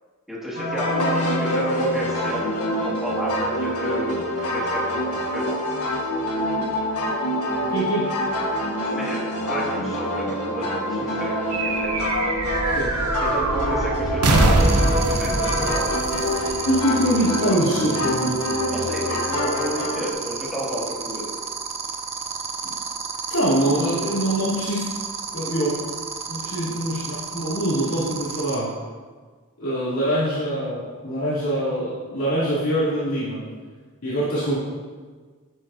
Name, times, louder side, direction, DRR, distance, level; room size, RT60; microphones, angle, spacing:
voice 1, 0.3-2.5 2.8-5.6 8.9-12.0 13.2-15.9 18.7-21.3 26.6-26.8, right 1 dB, ahead, -7 dB, 2.2 m, -31 dB
sound 1, 0.5-20.1, left 1 dB, 90° left, 1.6 m, -26 dB
voice 2, 7.7-8.1 12.7-12.9 16.6-18.4 23.3-24.9 25.3-25.8 26.3-28.7 29.6-33.4 34.0-34.6, right 1 dB, 65° left, -10 dB, 2.9 m, -24 dB
sound 2, 11.5-17.2, right 2 dB, 85° right, 0.9 m, -23 dB
sound 3, 14.6-28.5, right 6 dB, 30° right, 0.9 m, -30 dB
12.0 x 7.6 x 2.8 m, 1.5 s
head